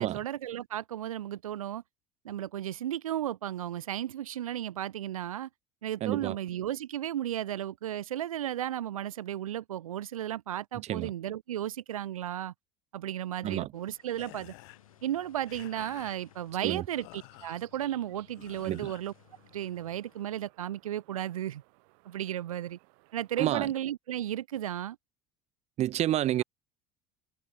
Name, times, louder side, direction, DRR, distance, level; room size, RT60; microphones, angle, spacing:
voice 1, 0.0-1.8 2.2-5.5 5.8-12.5 12.9-14.5 15.0-19.1 19.5-21.6 22.0-22.8 23.1-25.0, right 11 dB, 85° right, 0.8 m, -34 dB
voice 2, 6.0-6.4 10.9-11.1 13.4-13.7 16.6-16.8 18.6-18.9 23.4-23.7 25.8-26.4, right 13 dB, 40° right, 0.5 m, -29 dB
sound 1, 13.7-20.5, left 10 dB, 85° left, 4.1 m, -64 dB
sound 2, 13.8-23.7, right 34 dB, 65° right, 3.0 m, -64 dB
sound 3, 14.1-20.0, left 40 dB or more, 65° left, 1.7 m, -53 dB
hypercardioid pair, 70°, 17 cm